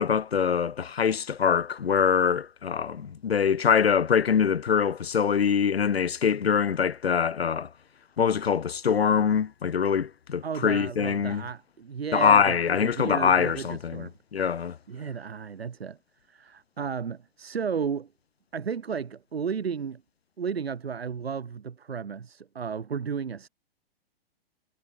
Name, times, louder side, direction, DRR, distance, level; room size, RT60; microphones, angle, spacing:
voice 1, 0.0-7.7 8.2-11.4 12.1-14.8, left 7 dB, 80° left, 2.0 m, -24 dB
voice 2, 10.4-14.1 14.9-16.0 16.3-18.1 18.5-20.0 20.4-23.5, right 6 dB, 80° right, 4.1 m, -33 dB
hypercardioid pair, 115°, 30 cm